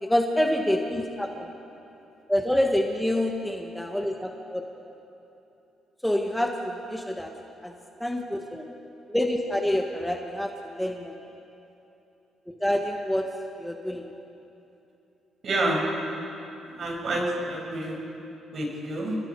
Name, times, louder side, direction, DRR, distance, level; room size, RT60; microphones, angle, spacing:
voice 1, 0.0-1.5 2.3-4.6 6.0-7.3 7.6-7.7 8.0-8.7 9.1-11.1 12.5-13.3 13.6-14.1, left 1 dB, 5° left, 2 dB, 1.7 m, -27 dB
voice 2, 15.4-15.8 16.7-17.2 17.5-18.0 18.5-19.2, right 2 dB, 55° right, -1 dB, 6.6 m, -28 dB
28.5 x 21.0 x 4.9 m, 2.9 s
cardioid pair, 90°, 0 cm